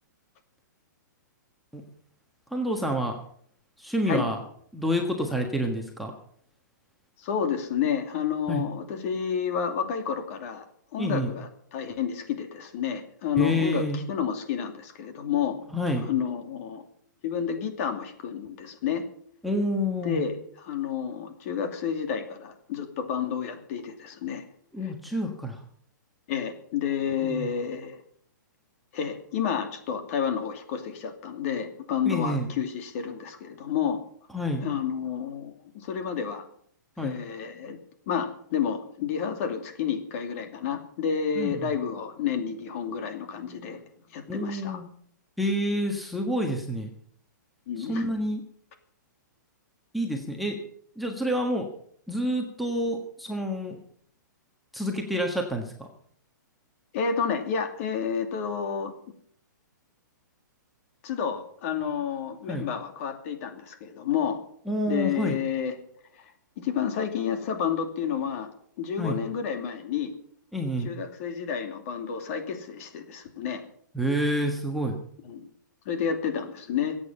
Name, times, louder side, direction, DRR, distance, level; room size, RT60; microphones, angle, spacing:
voice 1, 2.5-3.2 3.8-4.4 4.7-6.1 8.5-8.7 11.0-11.3 13.4-14.0 15.7-16.1 19.4-20.2 24.7-25.6 27.2-27.5 32.1-32.5 34.3-34.6 37.0-37.2 41.4-41.6 44.3-44.9 45.4-46.9 47.8-48.4 49.9-50.6 51.0-51.7 52.1-53.8 54.7-55.9 62.5-62.7 64.7-65.4 69.0-69.2 70.5-70.9 73.9-75.0, equal, ahead, 2 dB, 1.5 m, -28 dB
voice 2, 7.2-10.6 10.9-15.6 16.1-16.8 17.2-19.0 20.0-24.4 26.3-28.0 28.9-34.0 34.6-36.4 37.0-37.8 38.1-43.8 44.1-44.8 47.7-48.1 56.9-58.9 61.0-64.4 64.9-65.7 66.6-68.5 68.8-70.1 70.8-73.6 75.3-75.5 75.9-77.0, left 7 dB, 45° left, 6 dB, 2.6 m, -30 dB
22.5 x 8.8 x 5.6 m, 0.62 s
hypercardioid pair, 150°, 11 cm